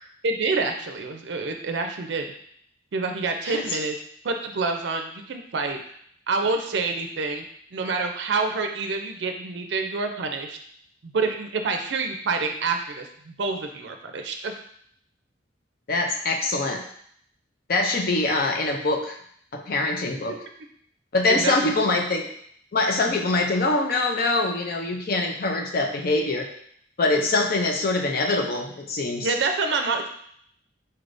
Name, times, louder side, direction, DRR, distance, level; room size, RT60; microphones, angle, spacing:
voice 1, 0.2-2.3 2.9-4.0 4.2-5.8 6.3-7.4 7.7-10.6 11.0-14.5 21.3-21.7 29.2-30.1, right 4 dB, 65° right, 5 dB, 0.4 m, -27 dB
voice 2, 3.5-3.8 15.9-16.8 17.7-19.2 19.5-20.4 21.1-22.3 22.7-26.5 27.0-29.3, left 2 dB, 50° left, 3 dB, 0.5 m, -24 dB
4.3 x 3.4 x 2.5 m, 0.65 s
head